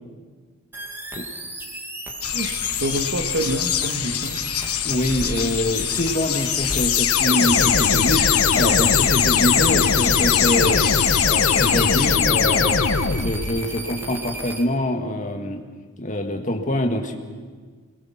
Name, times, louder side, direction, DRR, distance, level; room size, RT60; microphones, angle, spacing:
sound 1, 0.7-14.6, right 1 dB, 10° right, 1.7 m, -35 dB
sound 2, 2.2-12.2, left 10 dB, 80° left, 1.3 m, -25 dB
voice 1, 2.3-4.4, right 1 dB, 55° right, 6 dB, 1.8 m, -27 dB
voice 2, 4.8-10.8 11.2-12.8 13.1-15.6 16.0-17.2, equal, 35° left, 4 dB, 1.9 m, -25 dB
sound 3, 6.8-13.6, left 6 dB, 65° left, 1.0 m, -20 dB
25.5 x 21.5 x 5.9 m, 1.5 s
head